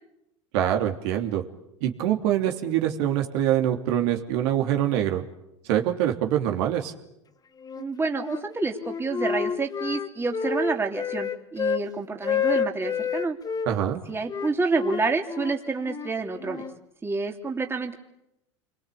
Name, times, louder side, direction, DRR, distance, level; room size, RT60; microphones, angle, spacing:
voice 1, 0.5-1.4 1.8-5.2 5.7-6.9 13.7-14.0, right 11 dB, 65° right, 4 dB, 3.2 m, -24 dB
Wind instrument woodwind instrument, 7.6-8.4 8.8-11.9 12.2-13.7 14.3-16.8, left 7 dB, 25° left, 1.7 m, -29 dB
voice 2, 7.8-13.4 14.1-16.7 17.0-18.0, right 4 dB, 15° right, 3 dB, 3.1 m, -28 dB
29.0 x 23.5 x 8.6 m, 0.86 s
hypercardioid pair, 95°, 16 cm